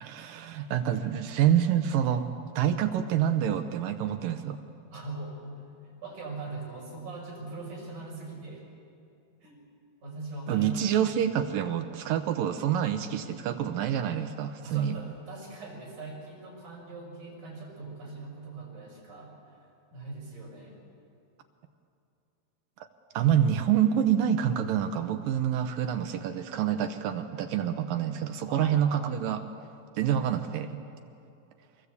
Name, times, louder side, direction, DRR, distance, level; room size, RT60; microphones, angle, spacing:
voice 1, 0.0-2.3 2.6-4.6 10.5-15.0 23.1-29.4 30.0-30.8, right 9 dB, 75° right, 8 dB, 2.3 m, -27 dB
voice 2, 4.9-8.7 9.4-9.6 10.0-10.9 14.6-19.3 19.9-20.8 28.5-29.1, right 3 dB, 50° right, -2 dB, 7.1 m, -41 dB
25.0 x 20.5 x 8.3 m, 2.6 s
omnidirectional pair, 4.5 m